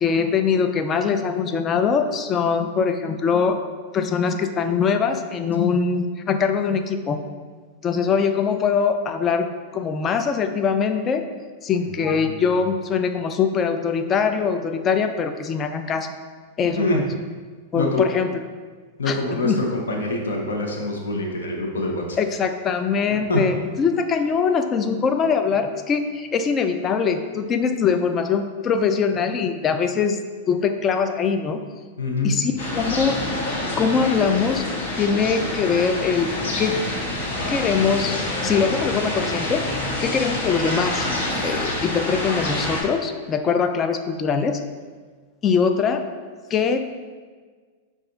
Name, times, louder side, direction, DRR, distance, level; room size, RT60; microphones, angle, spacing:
voice 1, 0.0-3.6 3.9-7.2 7.8-11.2 11.6-16.1 16.6-17.0 17.7-18.3 19.1-19.6 22.2-30.2 30.5-31.6 32.2-33.2 33.8-34.6 35.0-36.8 37.5-38.2 38.4-39.6 40.0-41.1 41.4-44.6 45.4-46.0 46.5-46.8, left 6 dB, 30° left, 7 dB, 0.3 m, -22 dB
voice 2, 11.7-12.5 16.8-17.0 17.7-18.0 19.0-22.2 23.3-23.4 32.0-32.4, left 2 dB, 90° left, 1 dB, 0.8 m, -25 dB
sound 1, 32.6-42.8, left 1 dB, 60° left, 1.2 m, -27 dB
5.2 x 2.4 x 3.9 m, 1.5 s
hypercardioid pair, 115°, 0 cm